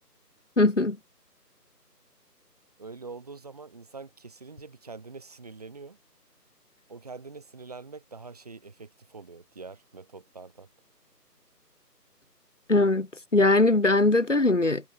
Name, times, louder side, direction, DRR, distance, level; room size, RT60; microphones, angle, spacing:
voice 1, 0.6-1.0 12.7-14.8, left 2 dB, 45° left, 3.4 m, -21 dB
voice 2, 2.8-6.0 6.9-10.7, right 4 dB, 25° right, 5.2 m, -44 dB
figure-of-eight pair, 165°, 49 cm